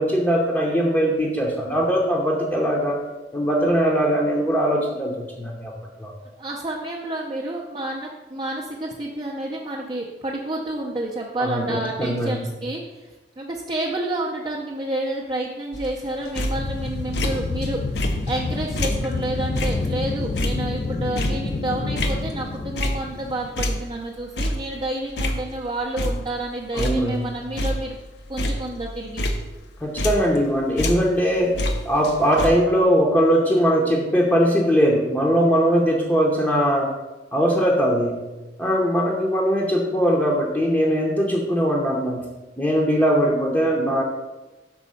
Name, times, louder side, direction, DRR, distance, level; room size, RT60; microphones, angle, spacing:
voice 1, 0.0-3.0 3.3-5.7 6.0-6.1 11.4-12.4 26.7-27.3 29.8-31.6 31.8-36.9 37.3-38.2 38.6-42.2 42.6-44.0, equal, 10° left, -2 dB, 0.8 m, -20 dB
voice 2, 6.4-13.1 13.4-28.0 28.3-29.2, right 1 dB, 25° right, -3 dB, 0.6 m, -29 dB
sound 1, 15.7-17.7 18.0-23.3 23.6-25.7 26.0-26.5 26.8-30.5 30.8-32.5, left 1 dB, 70° left, 0.7 m, -28 dB
sound 2, 16.5-23.6, left 3 dB, 35° left, 0.3 m, -29 dB
6.2 x 4.2 x 5.6 m, 1.1 s
head